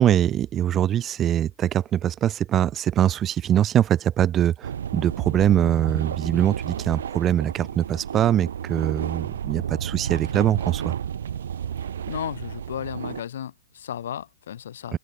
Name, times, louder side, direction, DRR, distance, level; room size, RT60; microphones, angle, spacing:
voice 1, 0.0-10.9 14.9-15.0, right 11 dB, 20° right, 0.4 m, -22 dB
sound 1, 4.6-13.2, right 9 dB, 80° right, 3.3 m, -32 dB
voice 2, 11.8-15.0, left 10 dB, 70° left, 3.0 m, -34 dB
open air
hypercardioid pair, 145°, 0 cm